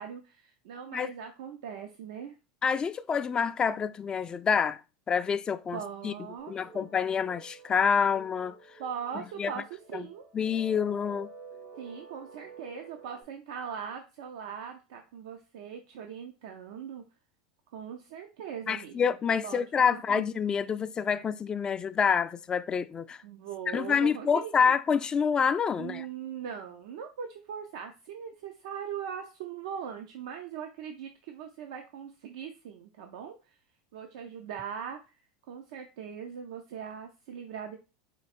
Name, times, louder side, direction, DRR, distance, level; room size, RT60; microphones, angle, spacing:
voice 1, 0.0-2.3 5.7-6.9 8.8-10.3 11.8-17.0 17.7-19.1 19.4-19.6 19.9-20.3 23.2-24.7 25.8-33.6 33.9-35.0 35.5-37.8, right 8 dB, 75° right, 0.6 m, -40 dB
voice 2, 2.6-4.8 5.1-6.1 6.5-8.6 9.4-9.5 9.9-10.0 10.3-11.3 18.7-23.2 23.7-26.1, left 6 dB, 25° left, 0.3 m, -27 dB
sound 1, 6.4-13.2, right 2 dB, 90° right, 2.6 m, -50 dB
4.5 x 2.4 x 4.2 m
hypercardioid pair, 100°, 3 cm